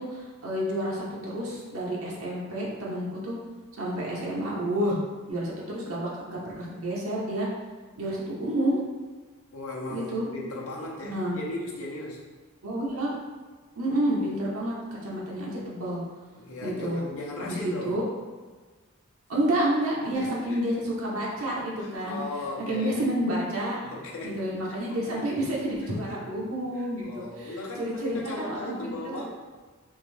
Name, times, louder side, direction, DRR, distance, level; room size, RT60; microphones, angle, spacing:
voice 1, 0.0-3.4 3.8-5.0 5.3-7.5 8.0-8.8 9.9-10.3 11.0-11.4 12.6-13.2 13.7-16.0 16.6-17.0 17.4-18.0 19.3-22.2 22.6-23.8 24.2-29.2, right 1 dB, 80° right, -5 dB, 0.9 m, -29 dB
voice 2, 9.5-12.2 16.4-18.0 20.0-20.8 21.8-23.0 23.8-24.4 24.9-25.2 25.8-26.2 26.8-29.3, left 2 dB, 80° left, -2 dB, 0.7 m, -37 dB
3.7 x 2.6 x 3.3 m, 1.4 s
head